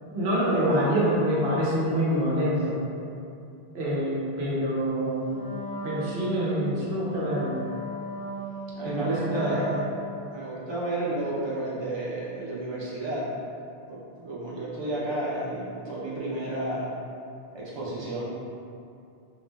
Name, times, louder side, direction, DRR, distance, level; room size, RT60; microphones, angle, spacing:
voice 1, 0.0-2.8 3.7-5.5 5.8-7.6 8.8-9.8, equal, 75° right, -7 dB, 1.0 m, -26 dB
Wind instrument woodwind instrument, 5.3-10.4, right 2 dB, 60° left, 0.7 m, -37 dB
voice 2, 8.7-9.9 10.3-13.4 13.9-16.9 17.5-18.2, right 1 dB, 35° right, -7 dB, 0.5 m, -31 dB
2.6 x 2.1 x 3.2 m, 2.6 s
omnidirectional pair, 1.1 m